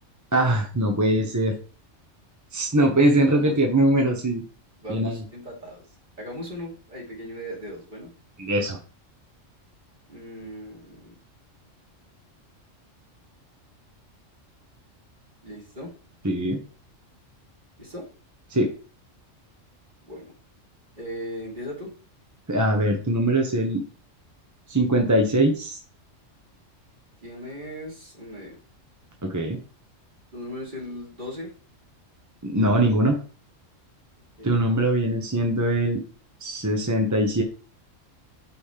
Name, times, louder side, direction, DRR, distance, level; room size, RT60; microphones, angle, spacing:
voice 1, 0.3-1.5 2.5-4.4 4.9-5.2 8.4-8.8 16.2-16.6 18.5-18.7 22.5-23.8 24.7-25.8 29.2-29.6 32.4-33.2 34.4-36.0 36.4-37.4, right 1 dB, 15° right, 2 dB, 0.8 m, -22 dB
voice 2, 2.9-3.6 4.8-5.8 6.2-8.1 10.1-11.2 15.4-15.9 17.8-18.1 20.0-20.3 21.0-21.9 27.2-28.6 30.3-31.5 34.4-34.7, equal, 40° right, -4 dB, 2.7 m, -38 dB
5.6 x 4.2 x 5.0 m, 0.38 s
omnidirectional pair, 1.3 m